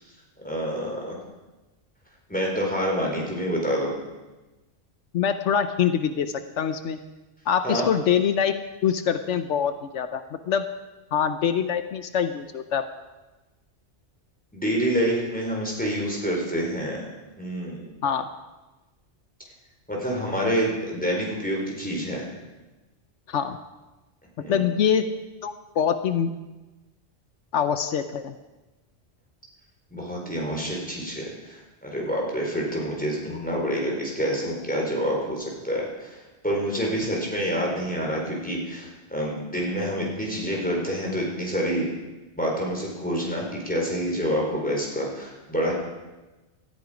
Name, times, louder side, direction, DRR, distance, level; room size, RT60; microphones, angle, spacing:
voice 1, 0.4-1.2 2.3-3.9 7.6-7.9 14.5-17.1 17.4-17.9 19.9-22.3 24.4-24.6 29.9-36.2 36.4-41.9 42.4-45.7, equal, 5° left, -2 dB, 4.2 m, -27 dB
voice 2, 5.1-7.0 7.5-8.5 8.8-10.6 11.1-12.8 18.0-18.3 23.3-23.6 24.5-25.1 25.4-26.3 27.5-28.4, left 8 dB, 80° left, 10 dB, 1.1 m, -24 dB
18.0 x 13.5 x 5.1 m, 1.1 s
omnidirectional pair, 1.2 m